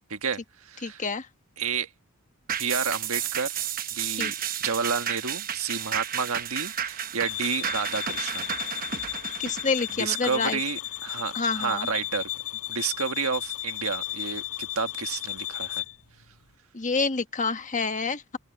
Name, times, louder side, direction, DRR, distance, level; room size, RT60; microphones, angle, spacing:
voice 1, 0.1-1.0 1.6-1.9 2.6-3.5 3.9-4.3 4.6-8.5 10.0-12.3 12.7-15.8, right 5 dB, 70° right, 1.6 m, -30 dB
voice 2, 0.8-1.3 4.2-4.3 9.4-10.6 11.3-11.9 16.7-18.4, left 4 dB, 35° left, 1.3 m, -28 dB
sound 1, 2.5-11.2 11.6-11.7, right 9 dB, 40° right, 1.0 m, -32 dB
sound 2, 7.2-16.0, left 15 dB, 85° left, 5.0 m, -34 dB
open air
head